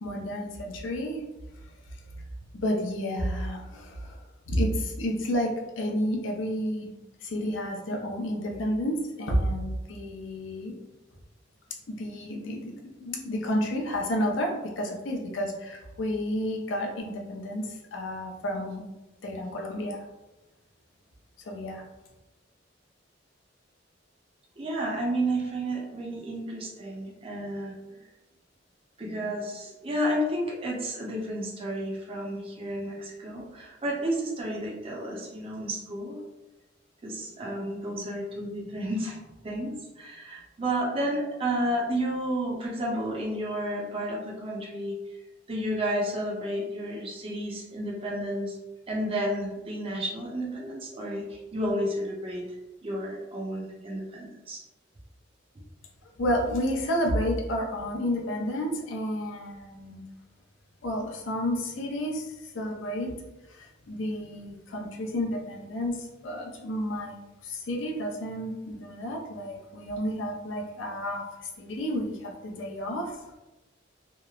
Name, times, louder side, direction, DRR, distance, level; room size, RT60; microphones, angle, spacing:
voice 1, 0.0-1.2 2.5-4.1 4.5-5.5 5.8-6.9 7.2-10.7 11.9-18.8 19.2-20.0 21.5-21.8 56.2-60.0 60.8-62.2 62.5-63.2 63.5-67.1 67.4-73.2, equal, 80° left, 0 dB, 0.5 m, -31 dB
voice 2, 24.6-27.7 29.0-36.2 37.0-45.0 45.5-48.6 48.9-52.4 52.8-54.6, right 1 dB, 30° right, -2 dB, 0.5 m, -31 dB
2.9 x 2.0 x 2.3 m, 1.0 s
head